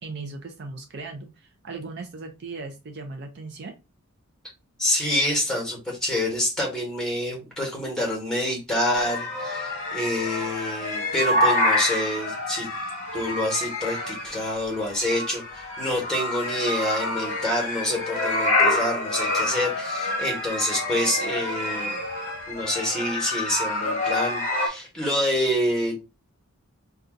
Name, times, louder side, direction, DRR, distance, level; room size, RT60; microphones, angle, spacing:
voice 1, 0.0-3.8, right 3 dB, 50° right, 0.5 m, -37 dB
voice 2, 4.8-12.7 13.1-22.0 22.5-26.0, left 1 dB, 5° left, 1.2 m, -27 dB
sound 1, 8.9-24.7, left 2 dB, 35° left, 0.9 m, -27 dB
2.6 x 2.3 x 3.7 m
head